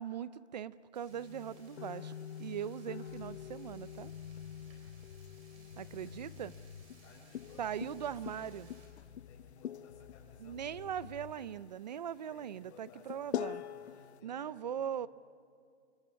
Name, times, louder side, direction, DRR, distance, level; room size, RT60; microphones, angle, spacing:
voice 1, 0.0-2.1 2.4-4.1 5.8-6.5 7.6-8.7 10.4-13.6 14.2-15.1, right 9 dB, 40° right, 17 dB, 0.6 m, -40 dB
Frying (food), 0.9-8.9, right 3 dB, 20° right, 4.1 m, -64 dB
sound 1, 1.1-14.2, left 10 dB, 75° left, 0.7 m, -45 dB
sound 2, 3.1-7.0 7.4-9.6 9.9-11.3, left 8 dB, 50° left, 2.7 m, -54 dB
voice 2, 5.5-6.1 7.0-8.6 9.3-11.5 12.3-15.1, left 3 dB, 25° left, -2 dB, 6.8 m, -60 dB
29.0 x 24.5 x 6.4 m, 2.3 s
hypercardioid pair, 170°, 34 cm